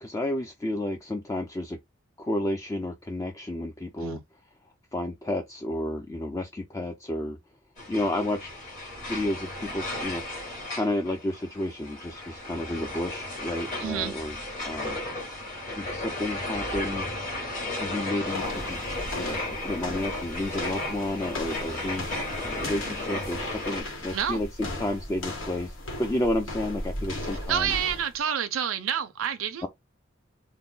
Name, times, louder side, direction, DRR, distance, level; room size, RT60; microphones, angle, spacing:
voice 1, 0.0-1.8 2.2-4.2 4.9-7.4 7.9-8.5 9.1-10.2 10.7-14.4 14.6-15.0 15.3-15.4 15.7-17.1 17.8-18.9 19.1-27.8 29.6-29.7, left 1 dB, 15° left, 0.3 m, -31 dB
sound 1, 7.8-23.8, left 2 dB, 40° left, 2.2 m, -34 dB
voice 2, 13.8-14.1 24.1-24.4 27.3-29.7, right 8 dB, 85° right, 0.5 m, -28 dB
sound 2, 18.3-28.2, left 1 dB, 75° left, 1.4 m, -37 dB
3.5 x 2.1 x 3.7 m
head